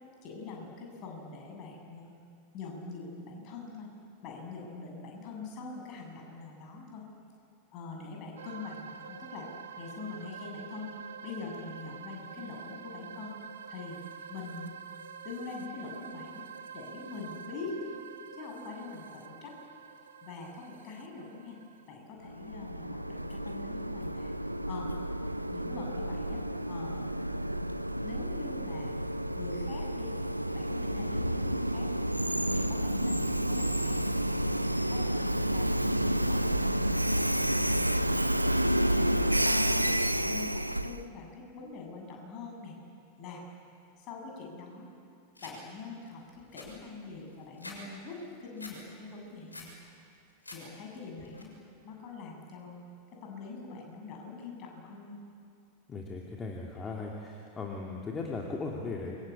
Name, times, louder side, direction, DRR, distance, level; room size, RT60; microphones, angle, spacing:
voice 1, 0.2-2.1 2.5-3.9 4.2-7.0 7.7-9.5 9.8-10.9 11.2-13.3 13.7-14.0 14.3-14.8 15.2-16.4 16.7-18.0 18.3-19.6 20.2-21.6 21.9-24.3 24.7-24.9 25.5-27.1 28.0-28.9 29.3-30.1 30.5-32.0 32.5-34.4 34.9-38.4 38.8-42.7 43.2-43.4 44.0-44.9 45.4-46.2 46.5-49.7 50.5-51.5 51.8-52.8 53.2-55.2, left 4 dB, 40° left, 0 dB, 8.0 m, -44 dB
sound 1, 8.4-21.9, right 7 dB, 65° right, 1.4 m, -47 dB
Train, 22.3-41.0, right 1 dB, 90° right, 0.8 m, -30 dB
sound 2, 45.4-45.6 46.0-46.1 46.4-47.8 48.1-48.8 49.2-49.7 50.1-50.6 50.9-51.4, left 2 dB, 80° left, 7.2 m, -47 dB
voice 2, 55.9-59.2, left 3 dB, 20° left, -1 dB, 3.1 m, -37 dB
28.5 x 24.0 x 8.7 m, 2.5 s
figure-of-eight pair, 90°, 0 cm